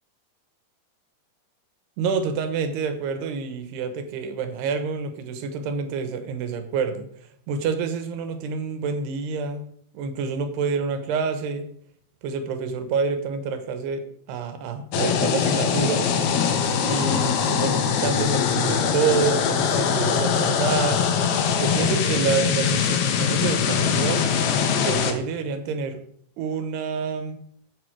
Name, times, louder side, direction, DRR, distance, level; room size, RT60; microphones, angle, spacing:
voice 1, 2.0-7.1 7.5-9.6 9.9-11.7 12.2-16.1 16.8-21.0 21.6-24.3 24.7-26.0 26.4-27.4, right 5 dB, 85° right, 8 dB, 3.3 m, -27 dB
sound 1, 14.9-25.1, left 7 dB, 75° left, 3.0 m, -22 dB
13.5 x 7.2 x 4.7 m, 0.66 s
omnidirectional pair, 4.6 m